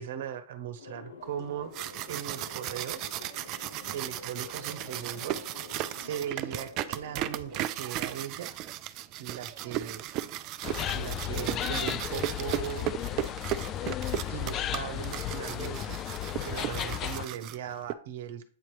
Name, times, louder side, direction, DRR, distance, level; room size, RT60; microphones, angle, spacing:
voice 1, 0.0-1.7 2.1-3.1 3.9-5.6 6.0-8.5 9.2-10.0 10.9-12.9 14.3-16.0 16.5-18.4, right 9 dB, 65° right, 10 dB, 1.0 m, -38 dB
sound 1, 0.8-7.6, left 4 dB, 80° left, 1.2 m, -48 dB
sound 2, 1.5-17.9, right 13 dB, 40° right, 0.5 m, -36 dB
sound 3, 10.6-17.3, left 11 dB, 30° left, 0.4 m, -34 dB
8.3 x 3.0 x 4.9 m, 0.43 s
hypercardioid pair, 120°, 0 cm